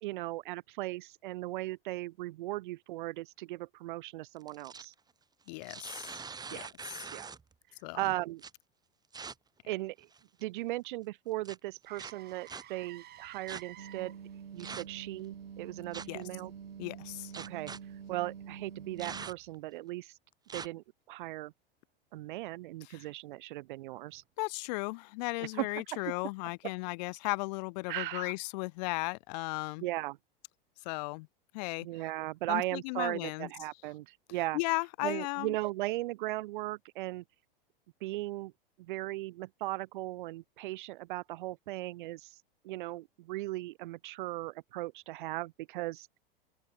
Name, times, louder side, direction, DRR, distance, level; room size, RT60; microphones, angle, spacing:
voice 1, 0.0-4.9 6.5-6.7 7.1-7.3 8.0-8.4 9.7-10.1 10.4-14.2 14.5-16.5 17.5-17.7 18.1-20.1 20.5-21.5 22.1-24.2 25.6-25.8 27.9-28.3 29.8-30.2 31.8-34.6 35.0-37.2 38.0-38.5 38.8-42.3 42.6-46.1, right 18 dB, 60° right, 0.5 m, -37 dB
sound 1, 4.4-4.9 5.5-7.5 8.4-8.5 9.1-9.3 10.0-10.4 11.5-11.6 12.0-12.6 13.5-13.6 14.6-15.0 15.9-16.2 17.3-17.8 19.0-19.6 20.5-20.7, right 5 dB, 15° right, 1.3 m, -43 dB
voice 2, 5.5-6.2 6.5-7.1 7.8-8.1 16.1-16.2 16.8-17.3 22.8-23.1 24.4-29.8 30.8-31.3 31.5-31.9 32.5-33.5 34.5-35.5, left 26 dB, 45° left, 0.5 m, -36 dB
Motor vehicle (road), 11.9-19.8 24.1-24.2, right 13 dB, 35° right, 3.0 m, -56 dB
sound 2, 13.8-19.3, right 7 dB, 85° right, 0.8 m, -47 dB
open air
figure-of-eight pair, 90°, 29 cm